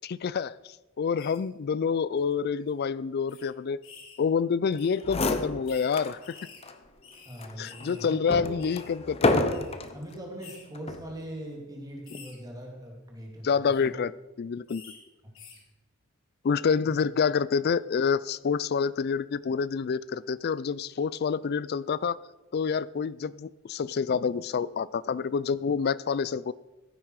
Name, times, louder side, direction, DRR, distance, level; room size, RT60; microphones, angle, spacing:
voice 1, 0.0-0.6 1.0-3.8 4.2-6.4 7.6-9.5 13.4-14.1 14.4-14.8 16.4-22.2 22.5-26.5, left 6 dB, 50° left, 19 dB, 0.4 m, -27 dB
sound 1, 1.2-1.4 2.2-2.3 2.6-2.7 3.3-3.4 3.8-4.2 4.8-5.0 5.7-5.9 6.2-8.1 8.3-8.9 9.5-9.7 10.4-10.6 11.2-11.4 12.0-12.4 13.5-13.8 14.7-15.0 15.3-15.6, left 6 dB, 80° left, 2.5 m, -50 dB
sound 2, 4.7-4.8 5.0-6.2 6.6-6.7 7.4-10.0 10.8-11.1, left 2 dB, 30° left, 0.8 m, -29 dB
voice 2, 7.2-8.7 9.9-13.5 13.8-14.0 16.8-17.0, equal, 20° right, 0 dB, 2.6 m, -41 dB
15.5 x 9.0 x 4.7 m, 1.1 s
head